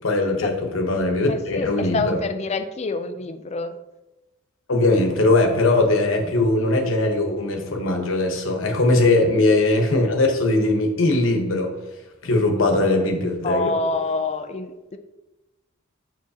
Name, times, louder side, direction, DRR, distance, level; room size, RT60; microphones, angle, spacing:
voice 1, 0.0-2.2 4.7-11.7 12.2-13.7, left 2 dB, 70° left, 3 dB, 1.1 m, -20 dB
voice 2, 1.3-3.8 13.4-15.0, left 3 dB, 30° left, 8 dB, 0.4 m, -27 dB
7.0 x 6.0 x 2.8 m, 1.0 s
head